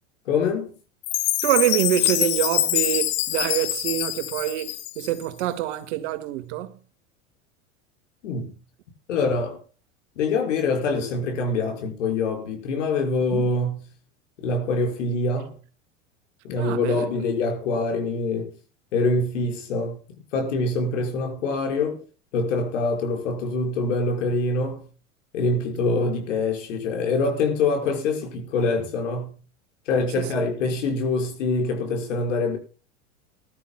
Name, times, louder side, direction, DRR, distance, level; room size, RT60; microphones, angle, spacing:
voice 1, 0.3-0.7 8.2-8.6 9.1-9.6 10.2-13.9 14.4-15.6 16.4-18.6 18.9-20.0 20.3-22.0 22.3-24.9 25.3-29.4 29.9-32.6, left 3 dB, 75° left, 5.9 m, -25 dB
Chime, 1.0-5.2, left 16 dB, 55° left, 1.3 m, -25 dB
voice 2, 1.4-6.7 13.3-13.5 16.6-17.1 30.2-30.5, right 14 dB, 65° right, 2.1 m, -26 dB
21.5 x 13.0 x 2.3 m
hypercardioid pair, 90°, 37 cm